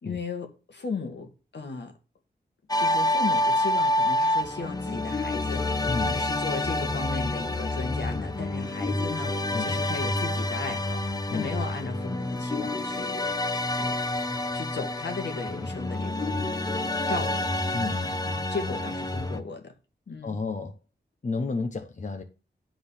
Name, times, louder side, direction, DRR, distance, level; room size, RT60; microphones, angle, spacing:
voice 1, 0.0-1.9 2.8-11.0 11.3-13.3 13.8-14.0 14.5-16.3 17.1-17.5 18.3-19.7 20.1-20.4, left 4 dB, 75° left, 1.6 m, -36 dB
sound 1, 2.7-19.4, left 1 dB, 20° left, 0.7 m, -28 dB
voice 2, 5.9-6.2 9.5-9.8 11.3-11.5 17.7-18.2 20.2-20.7 21.2-22.2, left 4 dB, 45° left, 0.9 m, -31 dB
10.0 x 3.9 x 6.7 m
wide cardioid pair, 115°, 18 cm